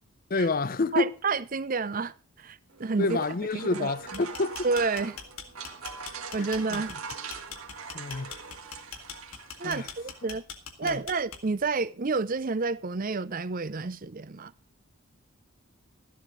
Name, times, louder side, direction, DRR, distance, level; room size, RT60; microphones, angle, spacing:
voice 1, 0.3-1.1 3.0-4.6 7.9-8.4 9.6-9.9 10.8-11.0, left 3 dB, 40° left, 0.5 m, -28 dB
voice 2, 0.9-3.2 3.7-4.2 4.6-5.2 6.3-7.0 9.6-10.4 10.8-14.5, right 4 dB, 40° right, 0.6 m, -30 dB
sound 1, 2.7-10.3, right 5 dB, 75° right, 1.8 m, -42 dB
sound 2, 4.0-11.7, left 6 dB, 75° left, 2.2 m, -42 dB
13.5 x 12.5 x 3.9 m
head